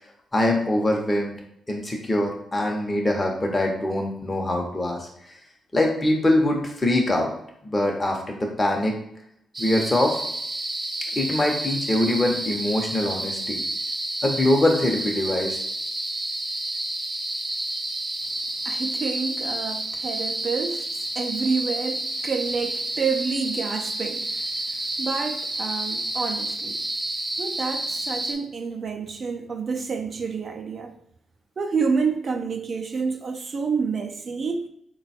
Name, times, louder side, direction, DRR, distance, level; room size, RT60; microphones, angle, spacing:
voice 1, 0.3-1.3 1.7-5.4 5.7-7.3 7.6-9.0 9.6-10.2 11.2-13.6 14.2-15.6, left 1 dB, 25° left, 0.8 m, -23 dB
sound 1, 9.5-28.3, right 1 dB, 20° right, 0.7 m, -30 dB
voice 2, 18.7-26.8 27.4-31.0 31.6-34.7, right 5 dB, 50° right, 0.4 m, -28 dB
3.8 x 2.2 x 4.2 m
cardioid pair, 70°, 0 cm